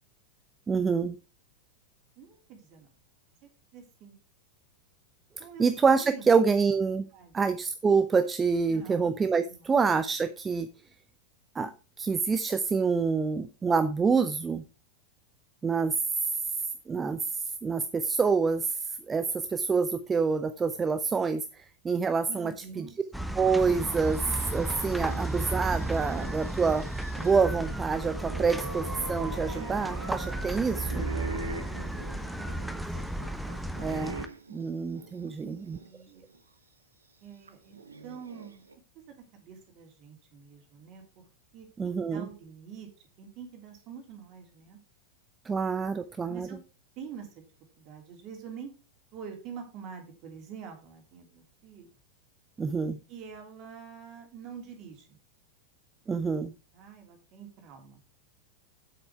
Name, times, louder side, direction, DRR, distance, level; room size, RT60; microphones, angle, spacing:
voice 1, 0.7-1.1 5.6-7.1 7.3-10.7 11.5-14.6 15.6-16.0 16.2-16.3 16.9-22.9 23.4-24.2 24.5-26.9 27.2-31.1 33.8-34.2 34.5-35.8 41.8-42.3 45.4-46.5 52.6-53.0 56.1-56.5, right 5 dB, 15° right, 0.6 m, -27 dB
voice 2, 2.2-2.9 3.4-4.1 5.4-5.7 5.9-6.2 7.1-7.3 8.7-9.1 9.5-9.7 22.3-22.9 31.4-33.2 35.4-36.2 37.2-37.8 38.0-38.6 39.1-41.2 41.5-42.9 43.2-44.8 46.3-46.6 46.9-47.4 47.8-48.7 49.1-51.9 53.1-55.2 56.7-58.0, right 7 dB, 40° right, 3.3 m, -46 dB
sound 1, 23.1-34.3, right 1 dB, ahead, 1.0 m, -34 dB
sound 2, 23.7-35.9 36.3-36.4 37.5-38.7, right 3 dB, 75° right, 1.1 m, -43 dB
8.7 x 7.8 x 4.6 m
figure-of-eight pair, 90°, 0 cm